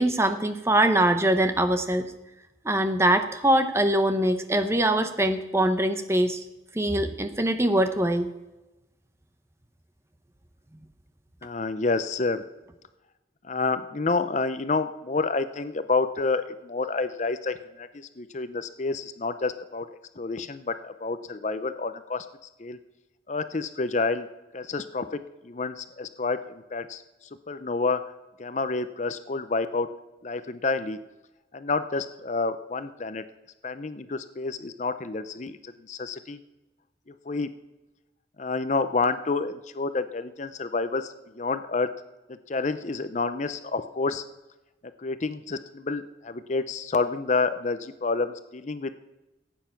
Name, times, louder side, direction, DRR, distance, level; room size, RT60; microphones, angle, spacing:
voice 1, 0.0-2.1 2.6-6.4 6.7-8.3, right 1 dB, 15° right, 8 dB, 0.8 m, -23 dB
voice 2, 11.4-12.4 13.4-19.9 20.2-22.3 22.6-22.8 23.3-24.3 24.5-25.2 25.4-27.0 27.5-28.0 28.4-29.9 30.2-31.0 31.5-33.2 33.6-36.4 37.3-37.5 38.4-41.9 42.5-44.2 45.0-48.9, left 3 dB, 40° left, 12 dB, 0.5 m, -29 dB
15.0 x 9.0 x 5.8 m, 1.0 s
head